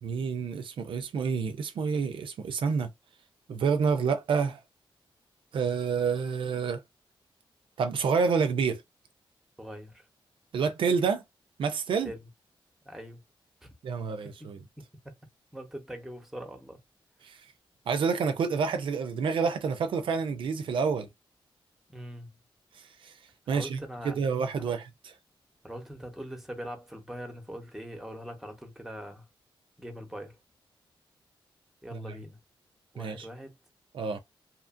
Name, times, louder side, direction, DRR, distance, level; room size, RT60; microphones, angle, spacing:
voice 1, 0.0-2.9 3.5-4.6 5.5-6.8 7.8-8.8 10.5-11.2 11.6-12.1 13.8-14.6 17.2-17.4 17.9-21.1 22.7-23.1 23.5-23.8 24.0-24.8 31.9-32.0 33.0-33.3 33.9-34.2, right 5 dB, 70° right, 0.4 m, -28 dB
voice 2, 9.6-10.1 12.0-12.3 12.8-13.2 13.6-13.7 14.8-15.1 15.5-16.8 21.9-22.4 23.5-24.2 24.6-24.7 25.6-29.3 29.8-30.4 31.8-32.4 32.9-33.6, equal, 5° right, 0.8 m, -42 dB
2.8 x 2.4 x 2.4 m
wide cardioid pair, 130°, 9 cm